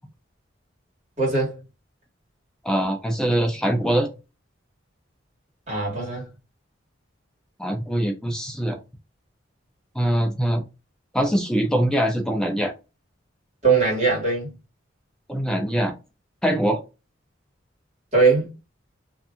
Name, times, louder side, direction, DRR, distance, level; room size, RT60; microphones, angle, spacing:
voice 1, 1.2-1.5 5.7-6.3 13.6-14.5 18.1-18.5, right 4 dB, 35° right, 1.6 m, -20 dB
voice 2, 2.6-4.1 7.6-8.8 10.0-10.6 11.1-12.7 15.3-15.9 16.4-16.8, right 1 dB, 5° left, 0.4 m, -23 dB
2.7 x 2.5 x 2.3 m
head